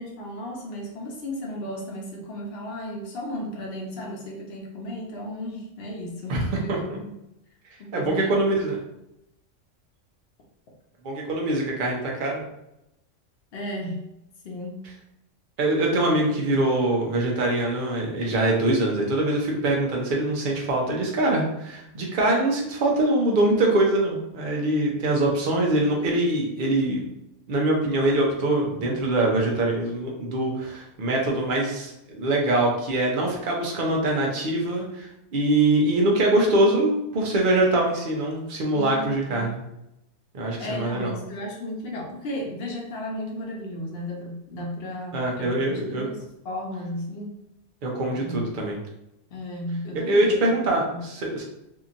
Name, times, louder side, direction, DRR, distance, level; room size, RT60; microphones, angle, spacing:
voice 1, 0.0-7.2 7.8-8.3 13.5-14.1 14.4-14.9 15.9-16.4 38.7-39.5 40.6-47.4 48.1-48.7 49.3-51.1, left 1 dB, 55° left, -1 dB, 0.9 m, -34 dB
voice 2, 7.9-8.8 11.0-12.4 15.6-27.0 27.5-39.6 40.3-41.1 45.1-46.1 47.8-48.7 49.9-51.4, right 1 dB, 50° right, -1 dB, 0.7 m, -23 dB
2.8 x 2.6 x 2.5 m, 0.86 s
omnidirectional pair, 1.3 m